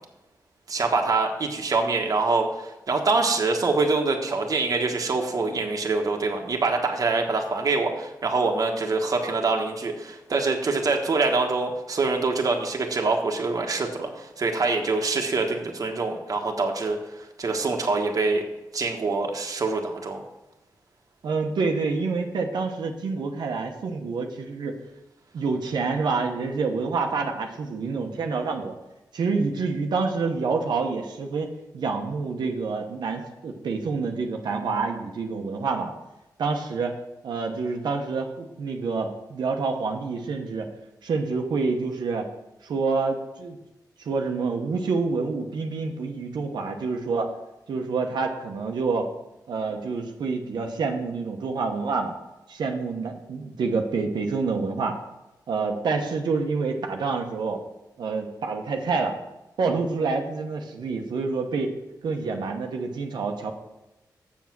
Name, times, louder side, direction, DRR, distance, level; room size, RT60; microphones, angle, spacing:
voice 1, 0.7-18.4 18.7-20.2, right 3 dB, 55° right, 2 dB, 1.3 m, -25 dB
voice 2, 21.2-24.8 25.3-28.7 29.1-35.9 36.4-37.0 37.2-40.7 41.0-42.3 42.6-43.6 44.0-47.3 47.7-49.1 49.5-52.1 52.5-55.0 55.5-57.6 58.0-59.1 59.6-61.7 62.0-63.5, right 4 dB, 85° right, 3 dB, 1.1 m, -27 dB
7.3 x 7.2 x 6.0 m, 0.95 s
cardioid pair, 85°, 7 cm